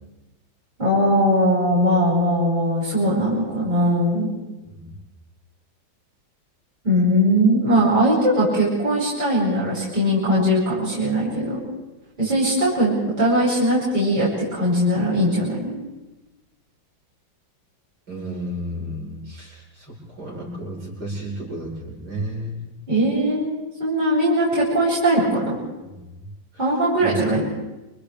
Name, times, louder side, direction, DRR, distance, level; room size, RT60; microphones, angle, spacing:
voice 1, 0.8-4.3 6.8-11.6 12.2-15.7 22.9-25.5 26.6-27.4, equal, 25° right, -10 dB, 8.1 m, -20 dB
voice 2, 18.1-22.8 25.8-26.3 26.5-27.4, right 1 dB, 70° right, -5 dB, 8.3 m, -33 dB
29.5 x 29.0 x 3.5 m, 1.1 s
omnidirectional pair, 2.1 m